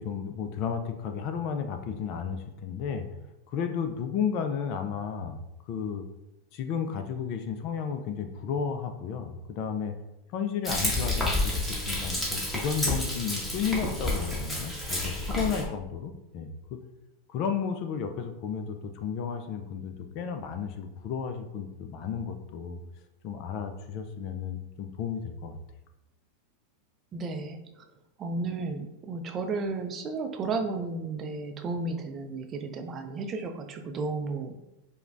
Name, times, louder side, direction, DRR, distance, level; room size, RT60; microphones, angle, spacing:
voice 1, 0.0-3.1 3.5-5.4 5.7-6.1 6.5-10.0 10.3-16.8 17.3-22.8 23.2-25.6, left 7 dB, 45° left, 7 dB, 0.4 m, -33 dB
Frying (food), 10.6-15.6, left 1 dB, 5° left, 1.1 m, -30 dB
voice 2, 27.1-27.9 28.2-34.7, right 3 dB, 30° right, 5 dB, 0.4 m, -33 dB
4.9 x 2.2 x 2.5 m, 0.91 s
figure-of-eight pair, 90°, 0 cm